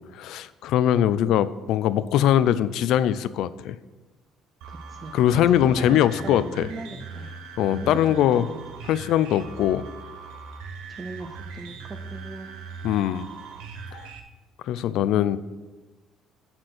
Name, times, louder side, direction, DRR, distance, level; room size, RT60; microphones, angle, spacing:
voice 1, 0.1-3.8 5.1-6.7 7.6-8.4 8.9-9.8 12.8-13.3 14.6-15.4, left 11 dB, 65° left, 16 dB, 0.4 m, -21 dB
sound 1, 4.6-14.2, right 4 dB, 85° right, 1.1 m, -40 dB
voice 2, 4.7-5.2 5.5-7.3 7.7-8.5 10.9-12.5, right 3 dB, 20° right, 5 dB, 0.5 m, -38 dB
11.5 x 4.4 x 6.6 m, 1.2 s
cardioid pair, 170°, 0 cm